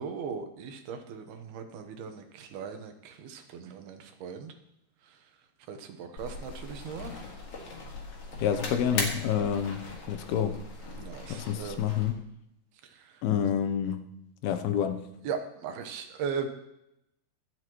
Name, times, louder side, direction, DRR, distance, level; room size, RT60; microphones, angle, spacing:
voice 1, 0.0-4.5 5.7-7.2 11.0-11.9 15.2-16.5, right 6 dB, 80° right, 6 dB, 3.0 m, -38 dB
sound 1, 6.2-12.1, left 3 dB, 45° left, 2.5 m, -39 dB
voice 2, 8.4-10.6 11.3-12.2 13.2-14.1 14.4-15.1, left 8 dB, 80° left, 9 dB, 2.7 m, -28 dB
24.0 x 8.2 x 3.1 m, 0.82 s
omnidirectional pair, 4.5 m